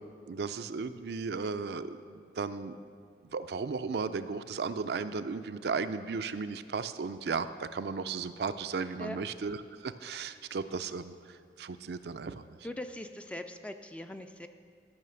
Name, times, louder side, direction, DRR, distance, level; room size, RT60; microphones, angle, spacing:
voice 1, 0.3-2.8 3.3-12.4, right 5 dB, 70° right, 10 dB, 0.4 m, -35 dB
voice 2, 12.6-14.5, left 1 dB, 5° left, 8 dB, 0.3 m, -41 dB
12.5 x 5.7 x 6.9 m, 2.2 s
head